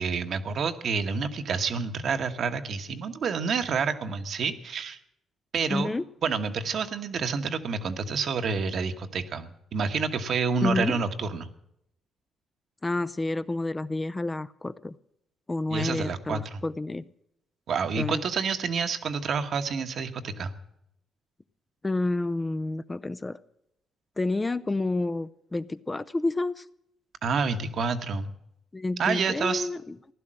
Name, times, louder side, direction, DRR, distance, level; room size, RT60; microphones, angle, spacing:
voice 1, 0.0-5.0 5.5-11.5 15.7-16.6 17.7-20.5 27.2-28.3 29.0-29.7, right 5 dB, 60° right, 7 dB, 1.3 m, -28 dB
voice 2, 5.7-6.0 10.6-11.0 12.8-14.9 15.5-17.1 18.0-18.2 21.8-23.4 24.2-26.6 28.7-30.0, left 2 dB, 20° left, 12 dB, 0.5 m, -29 dB
15.5 x 11.5 x 7.6 m, 0.78 s
cardioid pair, 90°, 0 cm